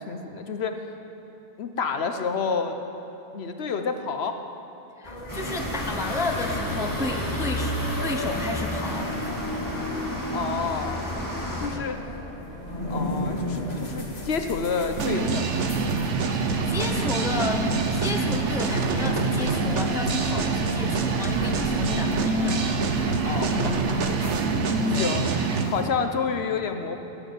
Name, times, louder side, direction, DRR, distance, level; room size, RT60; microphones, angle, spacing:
voice 1, 0.1-0.9 1.6-2.8 3.3-4.4 10.3-11.1 11.6-12.0 12.9-15.4 23.2-24.3 24.9-25.3 25.6-27.0, left 5 dB, 65° left, 7 dB, 1.1 m, -29 dB
sound 1, 5.0-24.5, left 1 dB, 35° left, 1.9 m, -37 dB
voice 2, 5.0-9.1 11.7-11.9 16.3-22.7 24.9-25.1, left 2 dB, 5° right, 4 dB, 0.6 m, -32 dB
sound 2, 5.3-11.7, left 1 dB, 15° left, 1.9 m, -30 dB
sound 3, 15.0-25.7, right 4 dB, 85° right, 1.2 m, -25 dB
16.0 x 7.3 x 9.1 m, 3.0 s
omnidirectional pair, 1.2 m